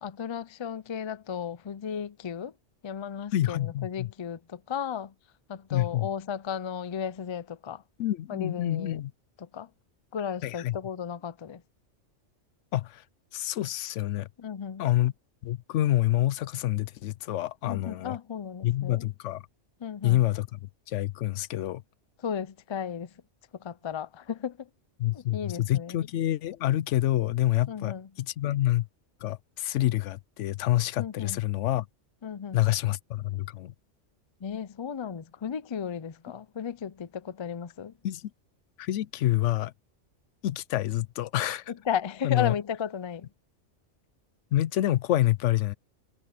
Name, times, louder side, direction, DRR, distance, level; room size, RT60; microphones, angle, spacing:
voice 1, 0.0-2.5 2.8-5.1 5.5-7.8 8.3-9.0 9.4-9.7 10.1-11.6 14.4-14.9 17.6-19.0 19.8-20.2 22.2-23.1 23.6-24.7 25.1-26.0 27.7-28.1 31.0-31.4 32.2-32.6 34.4-37.9 41.7-43.3, left 8 dB, 45° left, 0.4 m, -34 dB
voice 2, 3.3-4.1 5.7-6.1 8.0-9.1 10.4-10.8 12.7-13.0 13.3-14.3 14.8-15.1 15.4-18.2 18.6-19.4 20.0-20.6 20.9-21.8 25.0-28.9 29.2-31.9 32.5-33.7 38.0-38.3 38.8-39.7 40.4-41.7 42.2-42.5 44.5-45.7, left 14 dB, 80° left, 0.9 m, -27 dB
omnidirectional pair, 1.2 m